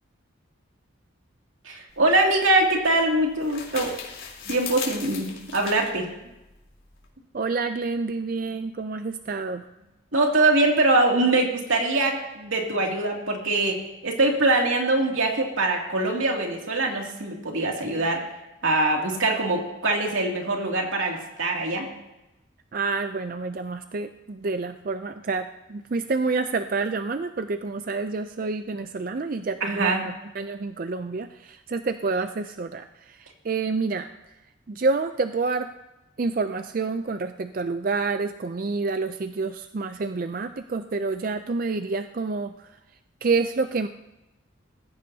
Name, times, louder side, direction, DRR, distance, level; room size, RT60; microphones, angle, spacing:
voice 1, 1.6-3.9 4.5-6.1 10.1-18.2 18.6-21.9 29.6-30.0, right 2 dB, 85° right, 0 dB, 2.6 m, -23 dB
sound 1, 1.9-7.1, left 6 dB, 85° left, 3.5 m, -39 dB
voice 2, 7.3-9.6 22.7-34.1 34.7-35.7 36.2-42.7 43.2-43.9, right 4 dB, 45° right, 9 dB, 0.4 m, -28 dB
19.5 x 15.5 x 2.8 m, 0.97 s
head